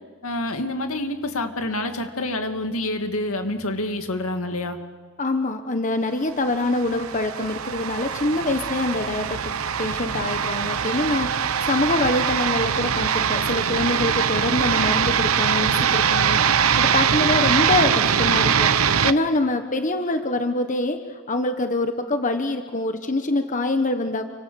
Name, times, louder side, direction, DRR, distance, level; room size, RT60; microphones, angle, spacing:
voice 1, 0.2-4.8, left 1 dB, 75° left, 6 dB, 2.4 m, -27 dB
voice 2, 5.2-9.4 9.8-11.3 11.6-16.4 16.8-18.7 19.0-21.0 21.3-24.3, left 2 dB, 35° left, 7 dB, 1.2 m, -24 dB
sound 1, 6.6-19.1, right 7 dB, 80° right, 0.9 m, -22 dB
29.0 x 25.0 x 7.1 m, 1.5 s
head